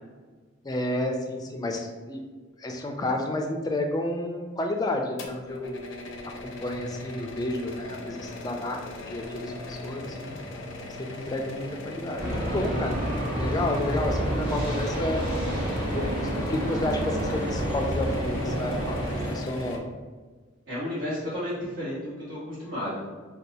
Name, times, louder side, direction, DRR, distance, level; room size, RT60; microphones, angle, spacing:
voice 1, 0.6-2.2 2.6-5.8 6.4-10.4 11.0-13.0 13.3-15.2 15.9-19.0 19.3-19.8, left 1 dB, 20° left, 3 dB, 0.3 m, -31 dB
sound 1, 5.2-19.8, left 2 dB, 80° left, 0.5 m, -39 dB
sound 2, 12.2-19.3, right 1 dB, 50° right, 0.9 m, -29 dB
voice 2, 20.7-23.0, left 1 dB, 70° right, -14 dB, 1.3 m, -32 dB
2.7 x 2.2 x 4.1 m, 1.4 s
head